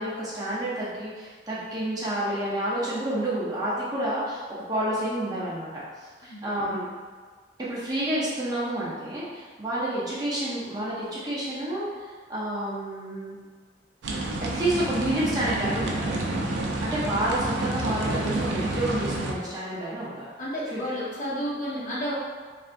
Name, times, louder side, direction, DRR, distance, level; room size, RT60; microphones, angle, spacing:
voice 1, 0.0-6.9 7.6-13.4 14.5-16.1 16.8-20.3 20.7-20.8, right 1 dB, 20° right, -8 dB, 0.6 m, -29 dB
sound 1, 14.0-19.3, right 2 dB, 70° right, 0.4 m, -29 dB
voice 2, 20.4-22.1, equal, 45° left, -7 dB, 0.7 m, -31 dB
3.3 x 2.5 x 2.5 m, 1.5 s
head